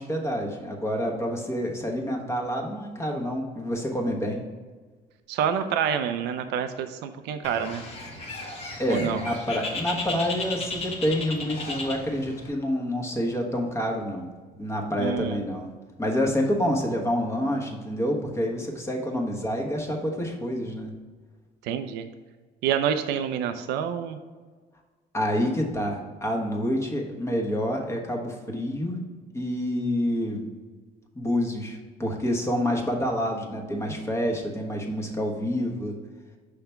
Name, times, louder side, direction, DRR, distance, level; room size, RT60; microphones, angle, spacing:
voice 1, 0.0-4.4 8.8-14.3 14.6-15.7 16.0-20.9 25.1-29.0 29.3-30.5 31.1-35.9, equal, 15° left, 0 dB, 1.1 m, -28 dB
voice 2, 5.3-7.8 8.9-9.2 15.0-15.4 21.6-22.1 22.6-24.2, right 8 dB, 90° right, 8 dB, 0.4 m, -27 dB
Bird, 7.4-12.5, left 3 dB, 40° left, 1.3 m, -35 dB
5.7 x 3.4 x 5.6 m, 1.4 s
cardioid pair, 110°, 17 cm